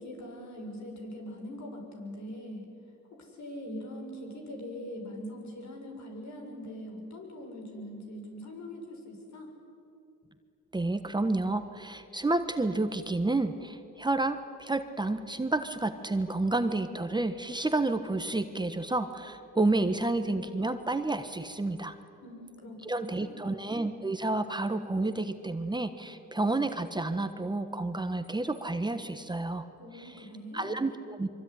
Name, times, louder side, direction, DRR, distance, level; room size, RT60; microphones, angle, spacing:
voice 1, 0.0-2.7 3.1-9.5 22.2-23.5 29.8-30.9, equal, 65° left, 2 dB, 7.2 m, -42 dB
voice 2, 10.7-21.9 22.8-29.6 30.0-30.1 30.5-31.3, right 2 dB, 15° right, 9 dB, 1.3 m, -30 dB
24.0 x 24.0 x 9.8 m, 2.6 s
cardioid pair, 90°, 30 cm